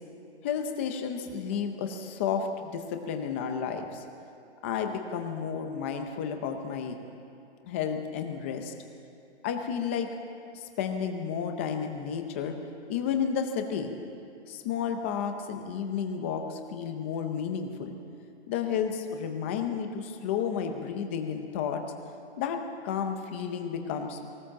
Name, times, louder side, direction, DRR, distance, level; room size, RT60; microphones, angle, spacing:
voice 1, 0.4-4.0 4.6-7.0 7.6-8.7 9.4-10.1 10.5-12.5 12.9-13.9 14.5-17.9 18.5-21.8 22.4-24.2, left 7 dB, 10° left, 5 dB, 0.6 m, -32 dB
19.5 x 19.0 x 7.5 m, 2.6 s
hypercardioid pair, 170°, 34 cm